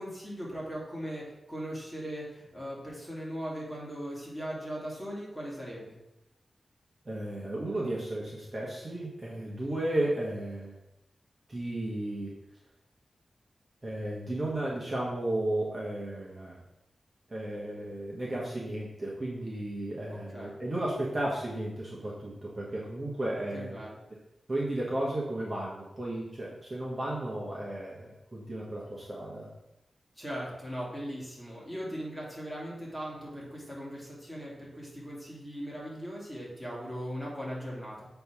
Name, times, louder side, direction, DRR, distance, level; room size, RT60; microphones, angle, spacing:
voice 1, 0.0-6.0 20.1-20.6 23.5-24.0 30.2-38.1, equal, 5° left, -6 dB, 2.7 m, -39 dB
voice 2, 7.0-10.8 11.5-12.3 13.8-16.6 17.3-23.7 24.5-29.5, right 1 dB, 35° right, -5 dB, 1.6 m, -34 dB
7.7 x 3.5 x 6.1 m, 0.87 s
wide cardioid pair, 120°, 0 cm